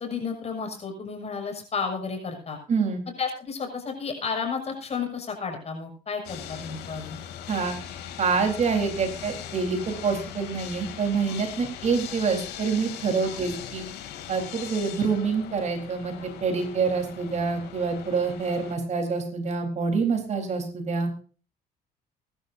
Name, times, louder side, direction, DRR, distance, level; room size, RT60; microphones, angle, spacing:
voice 1, 0.0-2.6 3.2-7.2 13.2-13.4, left 5 dB, 40° left, 3 dB, 6.7 m, -32 dB
voice 2, 2.7-3.0 7.5-7.7 8.2-13.9 14.3-21.1, right 5 dB, 45° right, 4 dB, 4.1 m, -26 dB
sound 1, 6.2-18.8, left 10 dB, 80° left, 3.0 m, -40 dB
23.5 x 12.0 x 2.7 m, 0.40 s
cardioid pair, 110°, 17 cm